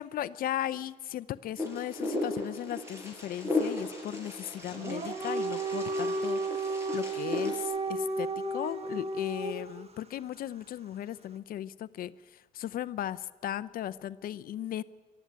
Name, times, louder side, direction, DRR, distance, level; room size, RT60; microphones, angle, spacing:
voice 1, 0.0-14.8, left 12 dB, 60° left, 15 dB, 0.6 m, -37 dB
Wind, 1.6-7.6, left 2 dB, 15° right, 6.3 m, -36 dB
Dog, 4.7-9.8, right 3 dB, 35° right, 1.6 m, -33 dB
23.5 x 12.5 x 9.3 m, 1.4 s
cardioid pair, 110°, 17 cm